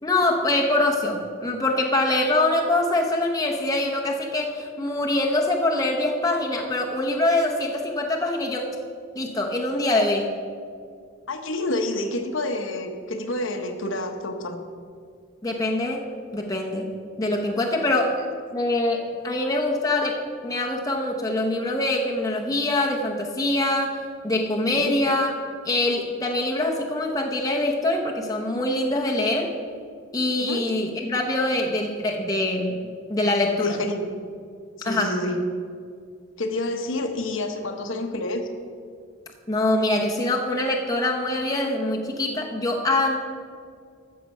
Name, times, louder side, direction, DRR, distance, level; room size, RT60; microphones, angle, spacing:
voice 1, 0.0-8.7 9.1-10.3 15.4-16.1 16.3-16.9 17.2-18.1 18.5-25.4 25.6-29.5 30.1-32.8 33.1-33.8 34.8-35.2 39.5-43.2, left 2 dB, 15° left, 0 dB, 0.8 m, -24 dB
voice 2, 11.3-14.6 17.9-18.1 24.7-25.0 30.4-30.6 33.6-34.0 34.8-35.4 36.4-38.5, left 1 dB, 60° left, 5 dB, 1.0 m, -28 dB
13.5 x 6.7 x 5.4 m, 2.2 s
head